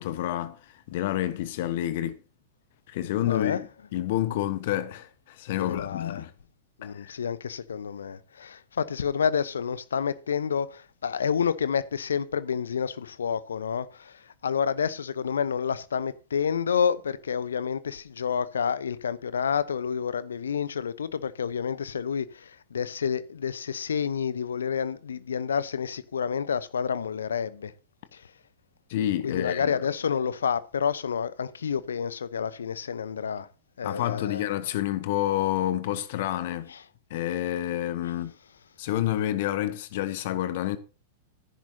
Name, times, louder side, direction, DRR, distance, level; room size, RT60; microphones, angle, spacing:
voice 1, 0.0-2.2 2.9-6.3 6.8-7.1 28.9-29.8 33.8-36.7 37.1-38.3 38.8-40.8, left 13 dB, 55° left, 1.2 m, -29 dB
voice 2, 3.3-3.6 5.6-6.2 6.8-14.2 14.4-27.7 28.1-28.2 29.2-33.5 33.8-34.4, left 7 dB, 75° left, 0.8 m, -29 dB
14.5 x 10.5 x 2.8 m
figure-of-eight pair, 95°, 0 cm